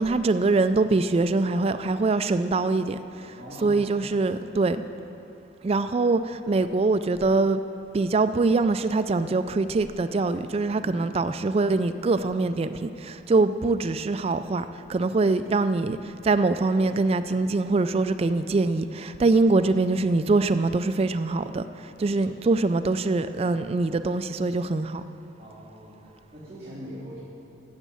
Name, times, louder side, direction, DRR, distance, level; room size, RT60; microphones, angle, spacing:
voice 1, 0.0-3.0 3.6-4.8 5.6-7.6 7.9-12.7 13.0-14.6 14.9-16.0 16.2-21.6 22.0-25.0, right 3 dB, 30° right, 11 dB, 0.3 m, -23 dB
voice 2, 3.4-3.9 10.8-10.9 22.0-22.2 25.4-27.2, equal, 15° right, -14 dB, 3.5 m, -42 dB
12.5 x 7.3 x 8.4 m, 2.8 s
head